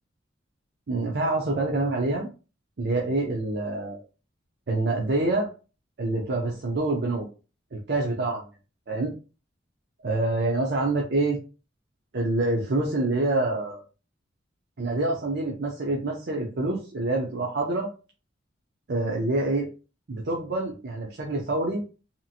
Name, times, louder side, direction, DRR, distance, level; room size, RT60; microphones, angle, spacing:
voice 1, 0.9-2.3 2.8-4.0 4.7-5.5 6.0-7.3 7.7-8.4 8.9-9.1 10.0-11.4 12.1-13.8 14.8-17.9 18.9-19.7 20.1-21.8, right 2 dB, 60° right, -1 dB, 0.6 m, -26 dB
2.8 x 2.4 x 2.7 m, 0.33 s
head